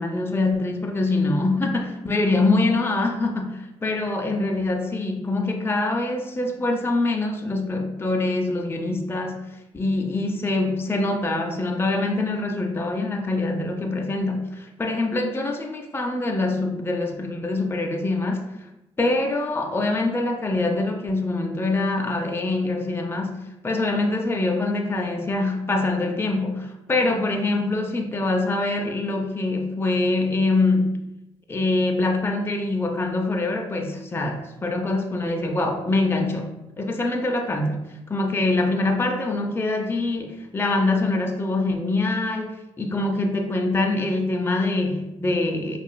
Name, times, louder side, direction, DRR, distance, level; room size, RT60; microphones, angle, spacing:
voice 1, 0.0-9.5 9.7-18.7 19.0-31.0 31.5-45.8, left 2 dB, 15° left, 3 dB, 0.5 m, -24 dB
4.7 x 2.4 x 2.2 m, 0.92 s
hypercardioid pair, 55°, 14 cm